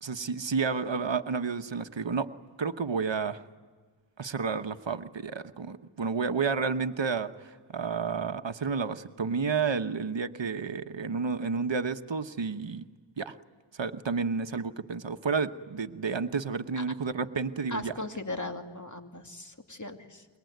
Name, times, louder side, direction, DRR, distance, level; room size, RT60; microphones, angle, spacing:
voice 1, 0.0-2.3 2.6-3.4 4.2-12.8 13.2-13.4 13.7-17.9, right 5 dB, 65° right, 9 dB, 1.1 m, -31 dB
voice 2, 17.7-20.3, left 2 dB, 40° left, 5 dB, 2.5 m, -38 dB
26.0 x 23.0 x 9.3 m, 1.5 s
wide cardioid pair, 40°, 47 cm